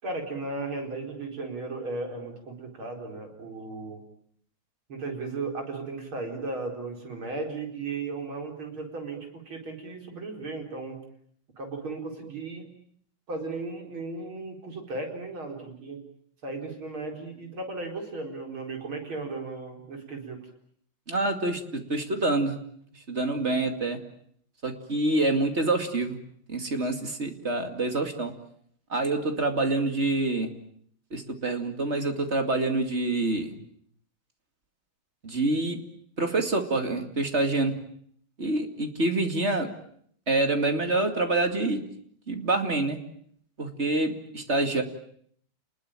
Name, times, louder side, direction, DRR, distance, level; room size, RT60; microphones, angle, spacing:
voice 1, 0.0-4.0 4.9-11.0 11.6-12.7 13.3-16.0 16.4-20.4, right 3 dB, 85° right, 3 dB, 5.3 m, -35 dB
voice 2, 21.1-22.6 23.1-24.0 24.6-26.2 26.5-28.3 28.9-30.5 31.1-33.5 35.2-35.8 36.2-37.8 38.4-39.7 40.3-41.8 42.3-43.0 43.6-44.8, right 2 dB, 30° right, 6 dB, 2.7 m, -26 dB
29.5 x 21.0 x 8.9 m, 0.65 s
omnidirectional pair, 2.2 m